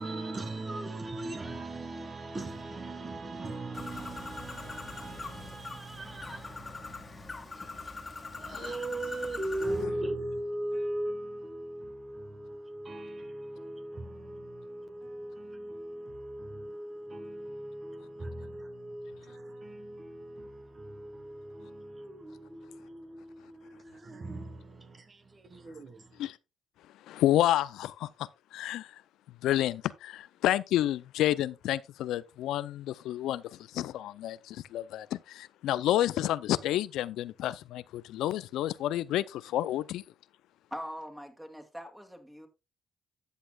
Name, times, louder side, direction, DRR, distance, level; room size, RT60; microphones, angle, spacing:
voice 1, 0.0-26.2, right 1 dB, 30° right, 1.2 m, -39 dB
Bird, 3.7-9.8, left 3 dB, 25° left, 1.8 m, -42 dB
voice 2, 27.1-28.9 29.4-40.0, left 13 dB, 85° left, 0.4 m, -30 dB
voice 3, 40.7-42.5, equal, 5° right, 2.3 m, -42 dB
13.5 x 8.3 x 2.3 m
cardioid pair, 100°, 0 cm